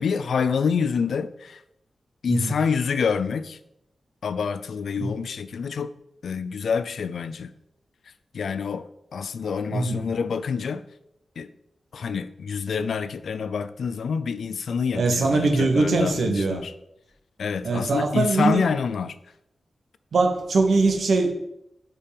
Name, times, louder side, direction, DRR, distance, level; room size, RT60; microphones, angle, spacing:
voice 1, 0.0-1.6 2.2-3.6 4.2-5.9 6.2-7.5 8.3-10.8 11.4-11.5 11.9-16.7 17.4-19.2, left 6 dB, 85° left, 0.4 m, -27 dB
voice 2, 14.9-16.6 17.6-18.6 20.1-21.3, right 3 dB, 75° right, 1.0 m, -22 dB
5.2 x 4.4 x 5.1 m
wide cardioid pair, 100°, 0 cm